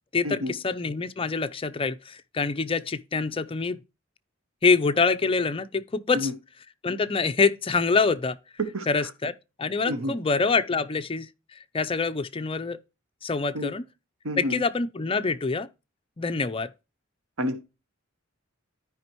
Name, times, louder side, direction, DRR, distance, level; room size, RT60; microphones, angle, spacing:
voice 1, 0.1-3.8 4.6-6.3 6.8-8.4 8.9-9.3 9.6-11.3 11.7-12.8 13.2-13.8 14.4-15.7 16.2-16.7, left 4 dB, 25° left, 0.5 m, -25 dB
voice 2, 14.2-14.6 17.4-17.6, equal, 85° right, 1.2 m, -29 dB
13.0 x 5.1 x 3.0 m
head